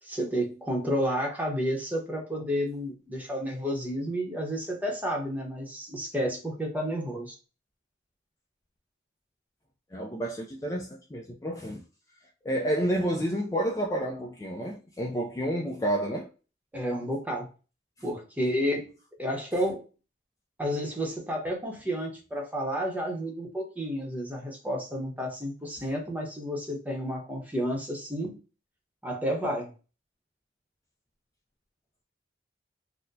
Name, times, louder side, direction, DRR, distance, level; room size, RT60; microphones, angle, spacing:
voice 1, 0.0-7.3 16.7-17.5 18.0-18.9 19.2-19.8 20.6-28.3 29.0-29.7, equal, 10° right, 0.8 m, -31 dB
voice 2, 9.9-11.8 12.4-16.3, right 1 dB, 20° left, 0.4 m, -30 dB
4.2 x 2.1 x 2.6 m
head